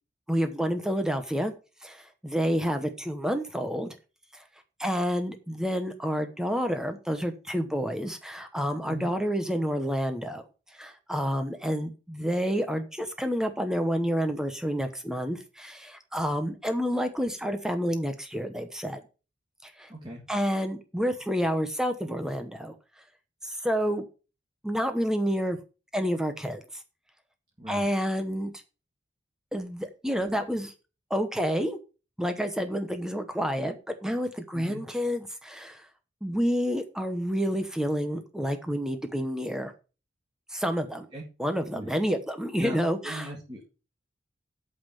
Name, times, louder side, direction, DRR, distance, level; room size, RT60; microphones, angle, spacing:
voice 1, 0.3-1.5 1.8-3.9 4.3-4.4 4.8-10.4 10.7-19.0 19.6-19.9 20.3-22.7 23.4-24.0 24.6-25.6 25.9-26.8 27.7-28.6 29.5-30.7 31.1-31.8 32.2-35.9 36.2-39.7 40.5-41.1 41.4-43.3, equal, 5° right, 7 dB, 0.9 m, -29 dB
voice 2, 19.9-20.2 27.6-27.9 34.5-34.8 41.1-41.2 41.7-41.9 42.6-43.7, equal, 25° right, -1 dB, 2.0 m, -39 dB
8.7 x 5.5 x 7.0 m, 0.33 s
head